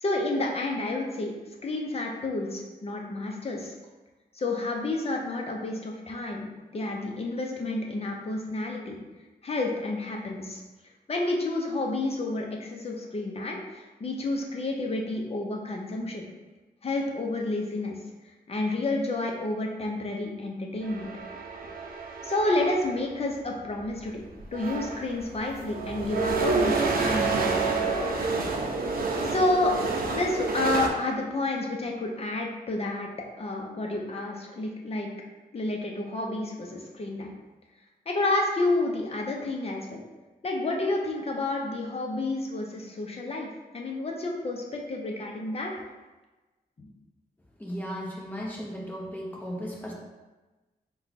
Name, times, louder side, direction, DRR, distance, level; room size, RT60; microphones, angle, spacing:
voice 1, 0.0-1.3 1.6-3.7 4.3-9.0 9.4-10.6 11.1-16.2 16.8-18.0 18.5-21.1 22.2-24.2 24.5-27.9 29.3-29.7 30.1-33.1 33.4-35.1 35.5-37.3 38.1-40.0 40.4-45.7 46.8-46.9, left 2 dB, 40° left, 0 dB, 0.7 m, -30 dB
sound 1, 20.8-23.1 24.0-24.1 24.4-30.9, right 3 dB, 70° right, 0.6 m, -29 dB
voice 2, 47.6-49.9, equal, 10° left, -3 dB, 0.9 m, -36 dB
4.3 x 2.3 x 4.0 m, 1.2 s
wide cardioid pair, 115°, 16 cm